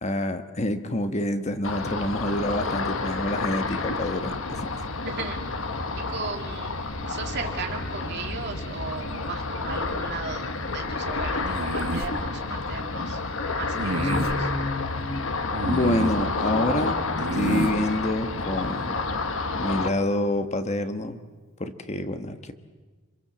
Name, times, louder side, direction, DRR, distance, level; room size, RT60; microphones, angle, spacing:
voice 1, 0.0-4.8 13.9-15.3 15.6-19.1 19.5-21.2 21.6-22.5, left 1 dB, 30° left, 8 dB, 1.3 m, -28 dB
Ocean, 1.6-19.9, left 3 dB, 65° left, 1.4 m, -30 dB
voice 2, 5.0-5.4 6.1-6.7 7.1-10.5 10.7-13.2 13.5-14.5, right 4 dB, 50° right, 2 dB, 3.0 m, -36 dB
sound 1, 11.4-12.1 13.7-14.4 15.5-16.2 17.2-17.8, right 2 dB, 70° right, 1.4 m, -29 dB
27.0 x 25.0 x 7.6 m, 1.3 s
head